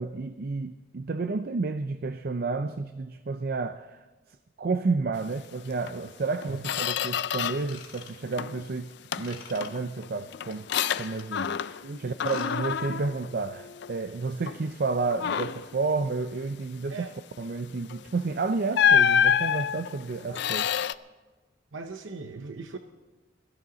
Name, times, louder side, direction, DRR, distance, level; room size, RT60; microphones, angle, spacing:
voice 1, 0.0-10.7 11.0-17.1 17.4-20.7, right 3 dB, 50° right, 10 dB, 0.5 m, -31 dB
Squeak, 5.8-6.0 6.3-7.8 8.1-8.7 9.1-11.9 12.2-14.0 14.5-14.7 15.1-15.7 17.8-18.0 18.7-20.9, left 8 dB, 60° left, 0.4 m, -27 dB
Ratchet pawl / Tools, 7.6-8.6 9.2-9.7 10.5-11.4 12.1-12.5 12.7-12.9 13.5-13.6, left 7 dB, 80° left, 3.0 m, -46 dB
voice 2, 11.8-12.2 16.9-17.1 20.3-20.4 21.7-22.8, right 4 dB, 90° right, 7 dB, 0.8 m, -39 dB
22.0 x 14.0 x 3.9 m, 1.3 s
head